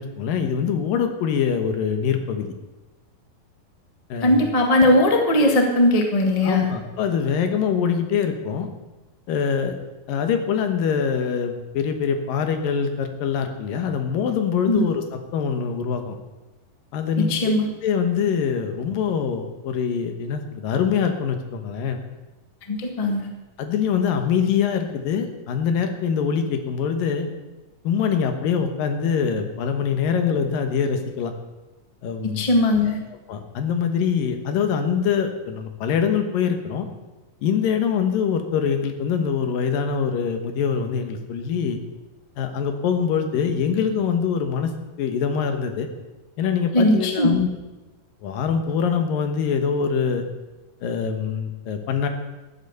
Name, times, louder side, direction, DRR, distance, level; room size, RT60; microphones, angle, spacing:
voice 1, 0.0-2.5 4.1-4.4 6.4-8.7 9.3-9.7 10.1-15.0 15.3-16.2 16.9-17.5 17.8-22.0 23.6-27.3 27.8-31.3 32.0-32.5 33.3-36.9 37.4-41.8 42.4-44.7 45.0-45.9 46.4-47.5 48.2-50.2 50.8-52.1, left 7 dB, 75° left, 6 dB, 2.9 m, -24 dB
voice 2, 4.2-6.7 14.7-14.8 17.2-17.7 22.7-23.3 32.3-33.0 46.7-47.3, left 1 dB, 25° left, 2 dB, 0.8 m, -19 dB
14.0 x 9.4 x 6.9 m, 1.1 s
omnidirectional pair, 4.1 m